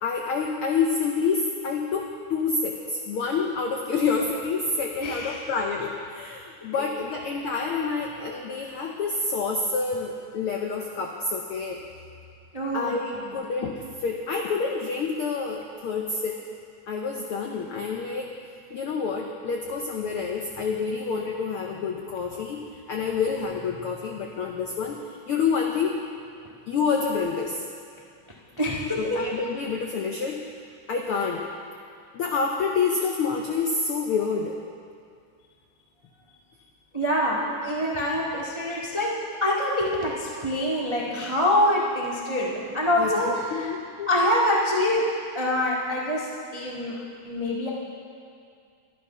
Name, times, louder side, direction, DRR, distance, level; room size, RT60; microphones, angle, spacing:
voice 1, 0.0-11.8 12.7-16.4 16.9-18.3 18.7-22.6 22.9-25.0 25.3-26.0 26.7-27.6 29.0-30.4 30.9-31.4 32.1-34.6 43.0-44.1, left 5 dB, 80° left, 1 dB, 1.2 m, -28 dB
voice 2, 5.0-5.4 12.5-13.3 28.6-29.2 36.9-39.1 39.4-43.7 44.1-45.0 45.3-47.0 47.2-47.7, left 1 dB, 40° right, -4 dB, 0.4 m, -25 dB
12.0 x 11.5 x 5.6 m, 2.3 s
omnidirectional pair, 3.5 m